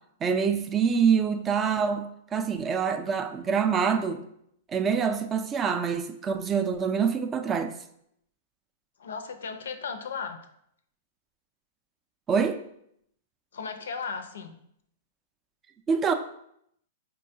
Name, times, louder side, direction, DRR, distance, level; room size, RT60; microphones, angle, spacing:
voice 1, 0.2-4.2 4.7-7.7 12.3-12.6 15.9-16.1, right 6 dB, 25° right, 0.3 m, -25 dB
voice 2, 9.0-10.4 13.5-14.6, left 5 dB, 80° left, 0.4 m, -35 dB
4.6 x 2.2 x 2.7 m
hypercardioid pair, 125°, 0 cm